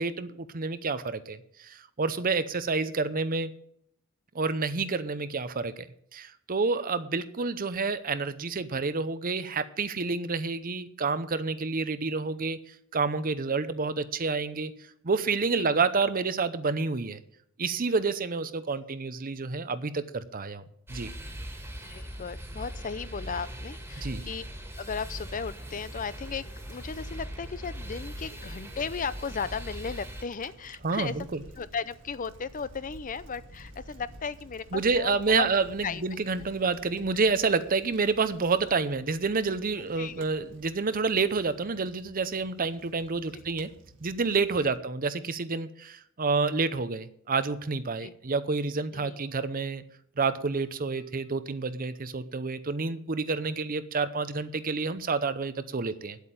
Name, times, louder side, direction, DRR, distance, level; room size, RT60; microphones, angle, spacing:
voice 1, 0.0-3.5 4.3-5.9 6.1-14.7 15.0-17.2 17.6-20.6 20.9-21.1 24.0-24.2 30.8-31.4 34.7-43.7 44.0-49.8 50.2-56.2, right 4 dB, 40° right, 13 dB, 0.7 m, -29 dB
sound 1, 20.9-30.2, equal, 10° right, 1.9 m, -40 dB
voice 2, 21.8-24.5 24.8-31.1 31.6-35.5 35.8-36.0 40.0-40.3 44.6-44.7 48.0-48.1 48.9-49.2, left 5 dB, 40° left, 16 dB, 0.5 m, -36 dB
Bicycle, 24.8-44.8, right 1 dB, 60° right, 1.9 m, -53 dB
9.7 x 8.3 x 8.8 m, 0.69 s
head